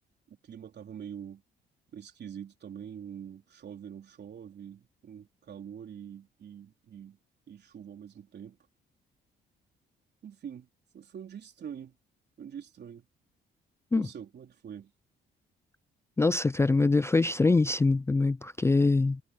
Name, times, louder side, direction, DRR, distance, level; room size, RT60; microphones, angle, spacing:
voice 1, 0.3-1.4 1.9-7.2 7.5-8.6 10.2-10.7 10.9-12.0 12.4-13.1 13.9-14.9, right 8 dB, 60° right, 3.9 m, -44 dB
voice 2, 16.2-19.2, left 3 dB, 15° left, 0.4 m, -24 dB
cardioid pair, 90°, 20 cm